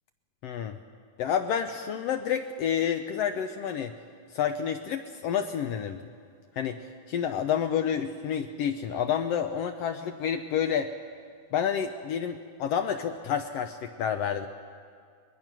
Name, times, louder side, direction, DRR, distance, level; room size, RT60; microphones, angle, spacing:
voice 1, 0.4-0.8 1.2-3.9 4.3-6.0 6.6-10.9 11.5-14.5, left 8 dB, 75° left, 7 dB, 1.5 m, -29 dB
22.5 x 20.5 x 6.0 m, 2.1 s
omnidirectional pair, 3.4 m